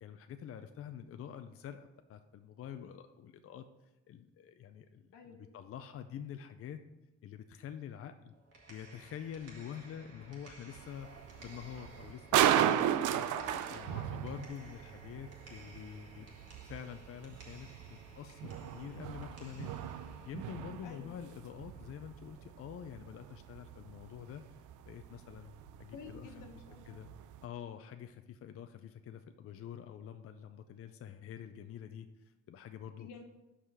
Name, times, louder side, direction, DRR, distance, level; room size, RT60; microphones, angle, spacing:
voice 1, 0.0-3.6 4.1-6.8 7.2-8.3 8.7-11.1 11.4-13.3 13.7-16.3 16.6-19.7 20.2-24.4 24.9-25.5 25.8-26.4 26.9-27.1 27.4-33.1, left 9 dB, 50° left, 8 dB, 0.5 m, -47 dB
voice 2, 5.1-5.4 13.3-14.3 20.8-21.2 25.9-27.0 32.9-33.2, left 5 dB, 85° left, 3 dB, 1.3 m, -51 dB
sound 1, 8.3-22.3, right 2 dB, 50° right, 1.9 m, -56 dB
sound 2, 10.7-27.4, right 11 dB, 80° right, 0.5 m, -36 dB
5.5 x 4.9 x 6.0 m, 0.98 s
cardioid pair, 90°, 30 cm